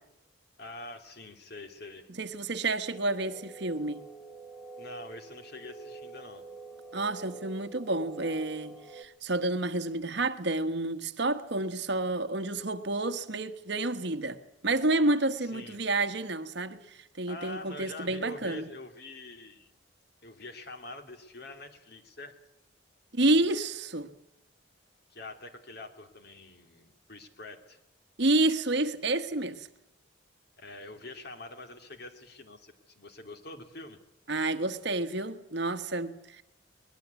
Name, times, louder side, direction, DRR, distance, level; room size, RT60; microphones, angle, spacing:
voice 1, 0.6-2.1 4.8-6.5 15.4-15.8 17.3-19.7 20.2-22.3 25.1-27.8 30.6-34.0, left 2 dB, 55° left, 2.7 m, -45 dB
voice 2, 2.2-4.0 6.9-14.4 14.6-18.6 23.1-24.1 28.2-29.7 34.3-36.4, right 2 dB, 60° right, 1.3 m, -29 dB
sound 1, 2.8-9.0, right 3 dB, ahead, 1.5 m, -47 dB
22.5 x 20.5 x 8.3 m
head